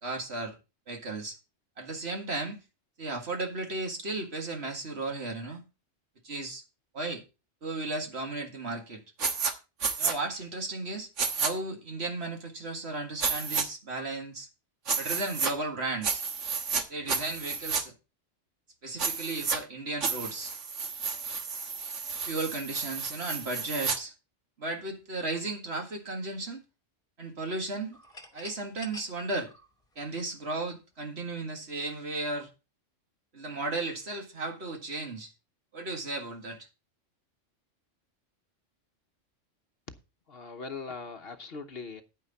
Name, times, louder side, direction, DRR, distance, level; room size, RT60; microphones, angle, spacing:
voice 1, 0.0-0.6 0.9-1.4 1.8-2.6 3.0-5.6 6.2-6.6 6.9-7.2 7.6-9.0 10.0-11.1 11.4-14.5 15.0-16.2 16.9-17.9 18.8-20.5 22.2-24.1 24.6-26.6 27.2-28.0 28.3-29.5 30.0-32.5 33.3-35.3 35.7-36.7, right 2 dB, 55° right, 2.1 m, -35 dB
sound 1, 9.2-9.5 9.8-10.1 11.2-11.5 13.2-13.6 14.9-15.5 16.0-16.8 17.1-17.8 19.0-19.6 20.0-24.0, right 5 dB, 70° right, 1.6 m, -31 dB
sound 2, 27.9-30.7, left 2 dB, 25° left, 2.0 m, -49 dB
voice 2, 40.3-42.0, left 4 dB, 55° left, 1.1 m, -40 dB
9.9 x 9.2 x 4.1 m
omnidirectional pair, 1.3 m